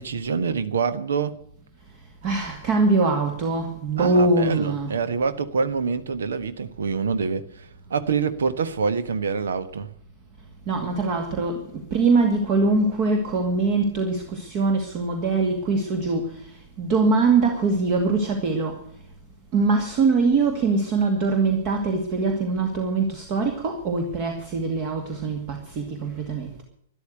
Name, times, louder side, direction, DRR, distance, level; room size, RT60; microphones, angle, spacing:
voice 1, 0.0-1.3 4.0-9.9, right 5 dB, 60° right, 1.4 m, -26 dB
voice 2, 2.2-4.9 10.7-18.8 19.5-26.6, right 3 dB, 35° right, 2.3 m, -23 dB
13.0 x 11.5 x 7.9 m
figure-of-eight pair, 105°, 0 cm